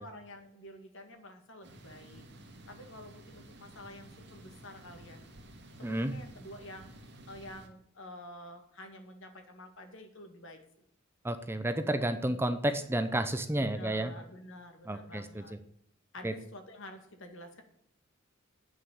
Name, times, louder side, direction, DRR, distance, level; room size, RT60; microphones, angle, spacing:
voice 1, 0.0-2.2 2.7-5.2 5.8-6.9 7.3-10.6 12.2-12.4 13.6-15.6 16.1-17.6, left 1 dB, 65° left, 5 dB, 2.0 m, -49 dB
sound 1, 1.6-7.7, right 1 dB, 60° right, 1.8 m, -53 dB
voice 2, 5.8-6.1 11.2-14.1 14.9-15.4 16.2-16.3, right 1 dB, 10° right, 9 dB, 0.7 m, -31 dB
9.3 x 6.3 x 8.3 m, 0.70 s
head